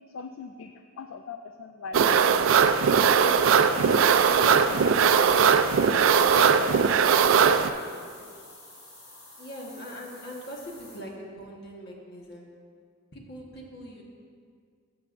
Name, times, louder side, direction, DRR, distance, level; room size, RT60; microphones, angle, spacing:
voice 1, 0.1-2.3 3.0-3.5 3.7-4.0 4.3-6.9 8.2-8.5, left 4 dB, 70° left, 6 dB, 0.3 m, -41 dB
sound 1, 1.9-7.7, right 6 dB, 75° right, 0.3 m, -20 dB
sound 2, 3.5-11.0, left 2 dB, 35° left, 2.5 m, -49 dB
voice 2, 9.4-12.5 13.1-14.0, equal, 50° left, -1 dB, 1.4 m, -41 dB
14.0 x 7.7 x 2.5 m, 2.1 s
head